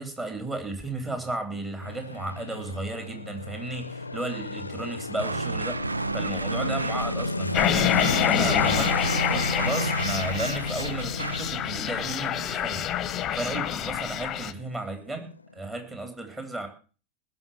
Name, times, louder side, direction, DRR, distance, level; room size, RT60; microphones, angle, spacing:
voice 1, 0.0-7.9 8.2-9.0 9.3-16.7, right 2 dB, 15° right, 5 dB, 3.7 m, -34 dB
sound 1, 1.8-16.1, left 2 dB, 80° left, 0.7 m, -33 dB
sound 2, 5.2-11.5, right 3 dB, 80° right, 0.6 m, -32 dB
sound 3, 7.5-14.5, left 10 dB, 30° left, 1.1 m, -27 dB
19.5 x 6.6 x 7.3 m, 0.39 s
figure-of-eight pair, 90°, 0 cm